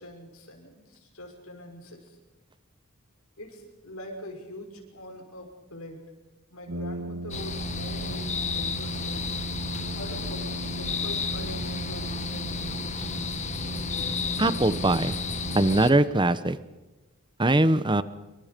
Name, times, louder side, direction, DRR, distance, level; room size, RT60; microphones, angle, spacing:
voice 1, 0.0-2.2 3.4-6.0 6.5-9.3 9.9-12.8, left 1 dB, 75° left, 2 dB, 6.2 m, -43 dB
Brass instrument, 6.7-16.2, right 2 dB, 90° right, 2.0 m, -36 dB
sound 1, 7.3-15.9, left 5 dB, 30° left, 1.5 m, -33 dB
voice 2, 14.4-15.1 15.5-16.6 17.4-18.0, right 2 dB, 20° right, 14 dB, 1.0 m, -21 dB
27.5 x 25.0 x 5.3 m, 1.1 s
head